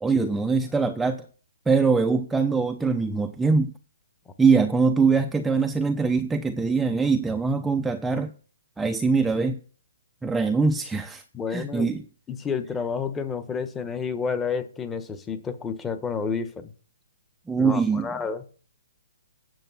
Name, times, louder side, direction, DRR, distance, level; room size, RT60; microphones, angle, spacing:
voice 1, 0.0-1.2 1.7-3.7 4.4-8.3 8.8-9.6 10.2-11.2 11.5-12.0 17.5-18.1, right 4 dB, 5° right, 0.6 m, -22 dB
voice 2, 11.3-12.0 12.3-16.7 17.6-18.4, left 5 dB, 15° left, 1.1 m, -30 dB
9.2 x 6.9 x 5.7 m
hypercardioid pair, 135°, 0 cm